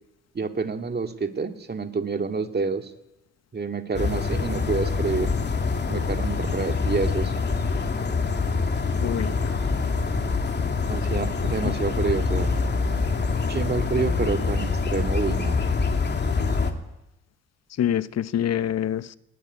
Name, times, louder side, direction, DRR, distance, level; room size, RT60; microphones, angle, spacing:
voice 1, 0.3-2.9 3.5-5.3 5.9-7.3 10.8-12.5 13.5-15.6, right 4 dB, 35° right, 2.4 m, -28 dB
sound 1, 3.9-16.7, left 4 dB, 35° left, 2.8 m, -25 dB
voice 2, 9.0-9.6 11.4-11.7 17.8-19.2, left 10 dB, 60° left, 1.0 m, -26 dB
19.5 x 18.5 x 9.8 m
cardioid pair, 90°, 30 cm